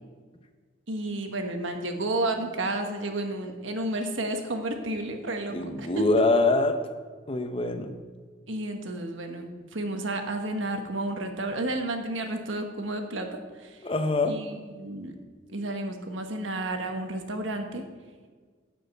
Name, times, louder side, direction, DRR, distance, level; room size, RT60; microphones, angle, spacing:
voice 1, 0.9-6.1 8.5-13.8 14.3-15.1 15.5-17.8, right 1 dB, 75° right, 5 dB, 1.3 m, -31 dB
voice 2, 5.5-6.7 7.3-7.9 13.8-14.4, left 2 dB, 30° left, 7 dB, 0.7 m, -24 dB
11.5 x 5.2 x 7.8 m, 1.5 s
head